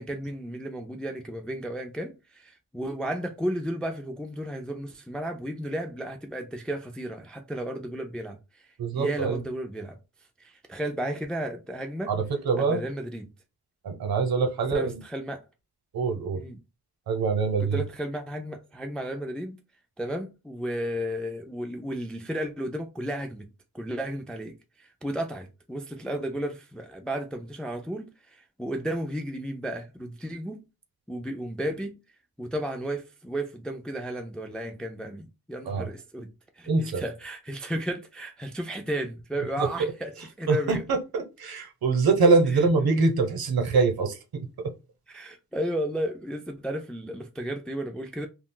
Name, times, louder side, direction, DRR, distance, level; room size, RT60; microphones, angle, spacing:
voice 1, 0.0-8.4 8.9-10.0 10.4-12.1 12.6-13.3 14.7-15.4 16.3-16.6 17.6-19.6 20.0-23.5 23.7-30.6 31.1-32.0 32.4-36.3 36.6-40.8 42.5-42.6 45.1-48.3, right 1 dB, ahead, 0.3 m, -33 dB
voice 2, 8.8-9.4 12.1-12.8 13.8-15.0 15.9-16.4 17.1-17.8 35.7-35.9 36.7-37.0 39.6-39.9 40.5-44.2, right 4 dB, 70° right, 0.9 m, -24 dB
2.4 x 2.3 x 3.7 m
wide cardioid pair, 145°, 38 cm